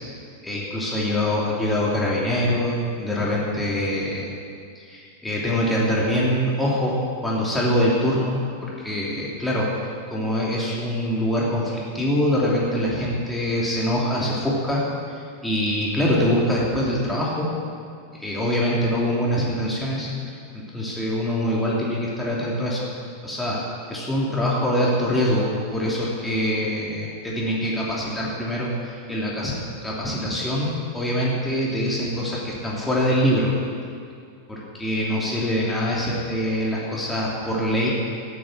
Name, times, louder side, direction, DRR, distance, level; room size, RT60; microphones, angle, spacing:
voice 1, 0.4-4.3 4.7-7.0 7.2-9.7 10.1-14.8 15.1-17.5 18.1-22.8 23.2-23.6 23.9-29.5 29.8-33.5 34.5-37.9, equal, 5° left, -5 dB, 2.8 m, -24 dB
13.0 x 11.0 x 6.4 m, 2.3 s
figure-of-eight pair, 90°, 0 cm